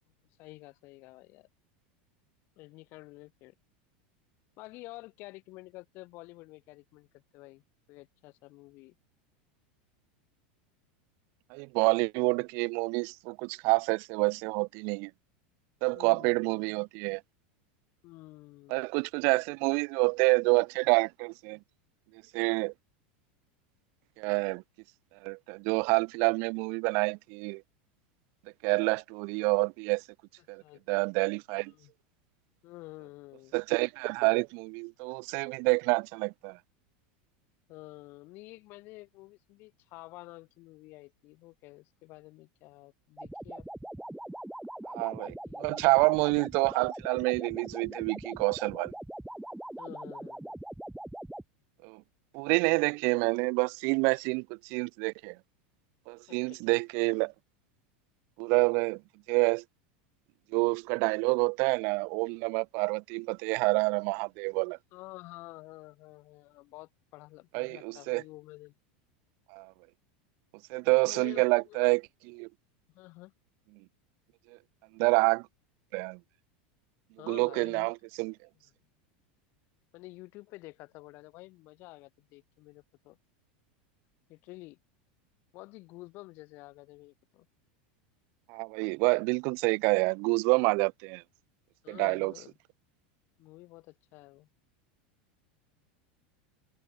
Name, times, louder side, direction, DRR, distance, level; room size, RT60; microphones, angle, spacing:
voice 1, 0.4-1.5 2.6-3.5 4.6-7.6 7.9-8.9 15.9-16.4 18.0-18.8 30.6-30.8 31.6-31.9 32.6-33.5 37.7-43.7 45.4-45.9 49.8-50.5 56.3-56.6 64.9-68.7 71.0-71.8 72.9-73.3 77.2-77.9 79.9-83.2 84.3-84.8 85.5-87.5 91.8-92.6 93.4-94.5, left 21 dB, 45° left, 7.9 m, -49 dB
voice 2, 11.5-15.1 15.8-17.2 18.7-21.6 22.3-22.7 24.2-24.6 25.2-27.6 28.6-30.0 30.5-30.6 30.9-31.7 33.5-36.6 44.8-48.9 51.8-52.0 52.3-55.4 56.1-57.3 58.4-59.0 59.3-59.6 60.5-64.8 67.5-68.2 69.5-69.7 70.7-72.5 74.9-75.5 75.9-76.2 77.3-78.3 88.5-91.2 91.9-92.3, right 33 dB, 45° right, 0.3 m, -28 dB
sound 1, 43.2-51.4, right 1 dB, 5° right, 1.9 m, -42 dB
supercardioid pair, 155°, 5 cm